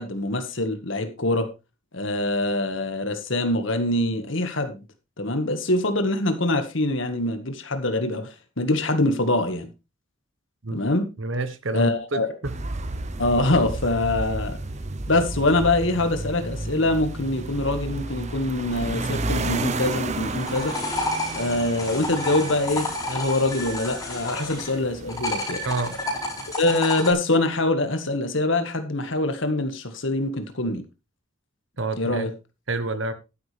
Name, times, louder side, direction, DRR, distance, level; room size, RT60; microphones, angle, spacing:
voice 1, 0.0-1.5 1.9-4.8 5.2-8.3 8.6-9.7 10.7-11.1 11.7-12.3 13.2-14.6 15.1-20.7 21.3-25.6 26.6-30.8 32.0-32.3, left 2 dB, 65° left, 1.8 m, -24 dB
voice 2, 11.2-12.5 25.6-25.9 31.8-32.3 32.7-33.1, right 3 dB, 70° right, 1.3 m, -28 dB
sound 1, 12.4-26.5, right 2 dB, 35° right, 0.8 m, -32 dB
sound 2, 20.2-24.8 25.1-27.1, left 2 dB, 15° left, 4.4 m, -30 dB
11.5 x 10.5 x 3.4 m
head